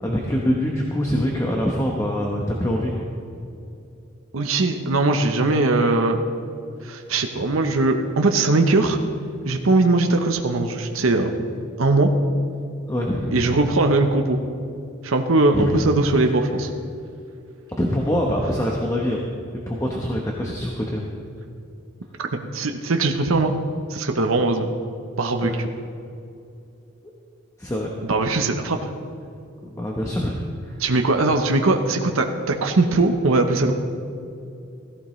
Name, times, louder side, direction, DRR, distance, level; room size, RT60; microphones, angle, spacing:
voice 1, 0.0-2.9 12.9-13.6 15.5-15.8 16.2-16.3 17.8-19.3 19.7-21.1 25.4-25.6 27.6-27.9 29.6-30.4 30.6-30.8, equal, 15° left, -1 dB, 0.9 m, -24 dB
voice 2, 4.3-6.2 6.8-9.0 9.5-11.3 11.8-12.1 13.3-14.4 15.0-16.7 22.2-23.5 23.9-24.7 25.2-25.7 28.0-28.9 30.8-33.7, right 2 dB, 80° right, 5 dB, 0.8 m, -20 dB
16.0 x 14.5 x 3.2 m, 2.6 s
head